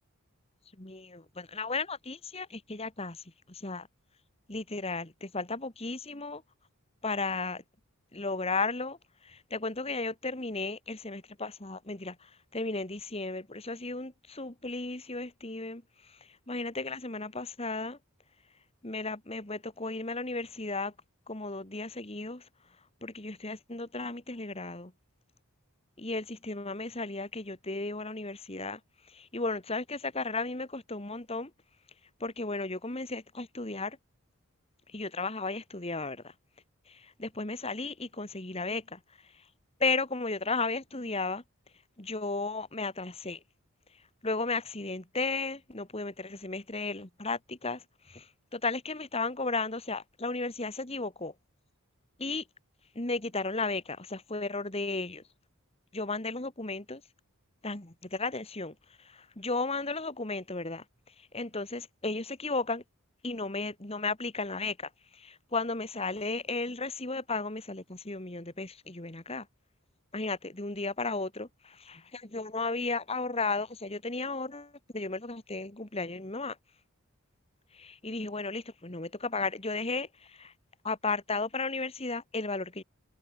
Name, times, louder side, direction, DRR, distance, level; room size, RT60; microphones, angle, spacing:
voice 1, 0.8-3.9 4.5-6.4 7.0-7.6 8.1-18.0 18.8-20.9 21.3-22.5 23.0-24.9 26.0-31.5 32.2-34.0 34.9-36.3 36.9-39.0 39.3-39.4 39.8-41.4 42.0-43.4 44.2-51.3 52.2-52.4 53.0-55.2 55.9-57.0 57.6-60.8 61.2-62.8 63.2-69.5 70.1-76.6 77.7-80.5 80.8-82.8, left 3 dB, 25° left, 2.0 m, -34 dB
head